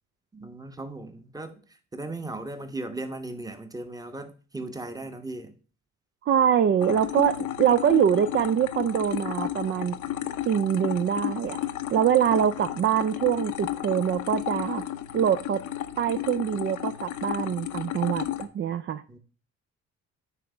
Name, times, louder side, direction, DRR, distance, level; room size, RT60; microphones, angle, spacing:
voice 1, 0.3-1.6 1.9-5.5 19.1-19.2, right 2 dB, 10° right, 0.9 m, -37 dB
voice 2, 6.2-10.0 10.5-11.6 11.9-14.8 15.1-15.6 16.0-19.0, right 9 dB, 40° right, 0.4 m, -24 dB
sound 1, 6.8-18.5, left 12 dB, 75° left, 0.7 m, -33 dB
9.2 x 3.4 x 4.9 m
cardioid pair, 90°, 30 cm